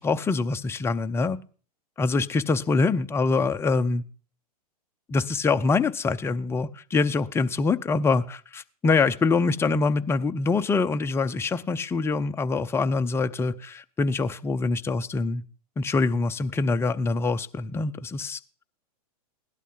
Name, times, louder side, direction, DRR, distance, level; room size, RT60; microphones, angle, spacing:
voice 1, 0.0-1.4 2.0-4.0 5.1-15.4 15.8-18.4, left 4 dB, 10° left, 9 dB, 0.6 m, -24 dB
16.5 x 11.5 x 3.9 m, 0.41 s
hypercardioid pair, 115°, 20 cm